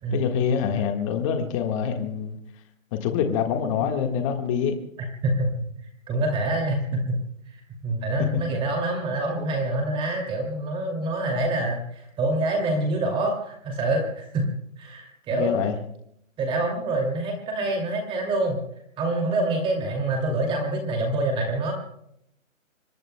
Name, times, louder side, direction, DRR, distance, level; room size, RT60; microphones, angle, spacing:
voice 1, 0.1-2.4 2.9-4.7 8.2-8.4 15.3-15.8, left 7 dB, 25° left, 4 dB, 1.6 m, -25 dB
voice 2, 5.0-5.5 6.1-7.2 7.8-14.5 14.8-15.6 16.4-18.6 19.0-21.7, right 2 dB, 15° right, 2 dB, 2.5 m, -26 dB
26.5 x 22.0 x 2.2 m, 0.72 s
hypercardioid pair, 150°, 40 cm